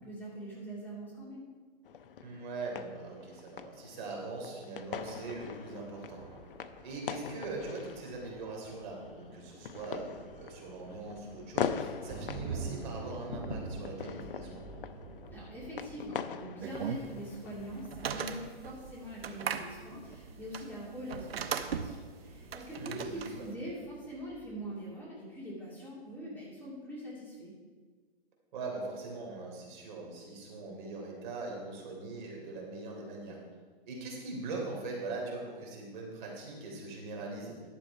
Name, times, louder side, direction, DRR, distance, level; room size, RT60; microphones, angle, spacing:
voice 1, 0.0-1.5 15.3-27.5, equal, 5° left, -7 dB, 2.4 m, -43 dB
sound 1, 1.8-17.9, left 8 dB, 60° left, 0.7 m, -42 dB
voice 2, 2.2-6.2 6.8-14.6 22.8-23.5 28.5-33.4 33.8-37.5, right 3 dB, 50° right, -1 dB, 3.3 m, -41 dB
Thunder, 4.9-24.7, right 3 dB, 15° right, 1.8 m, -48 dB
sound 2, 16.6-23.5, right 7 dB, 70° right, 0.9 m, -39 dB
11.5 x 7.1 x 4.6 m, 1.5 s
hypercardioid pair, 140°, 31 cm